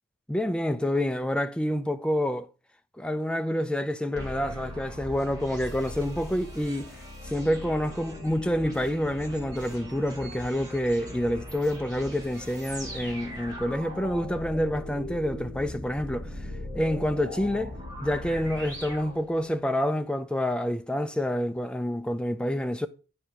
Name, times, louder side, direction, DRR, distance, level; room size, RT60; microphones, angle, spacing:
voice 1, 0.3-2.5 3.0-6.9 7.2-16.5 16.7-22.9, equal, 5° left, 0.3 m, -28 dB
sound 1, 4.1-19.8, left 1 dB, 15° right, 1.8 m, -40 dB
9.0 x 4.4 x 4.7 m
head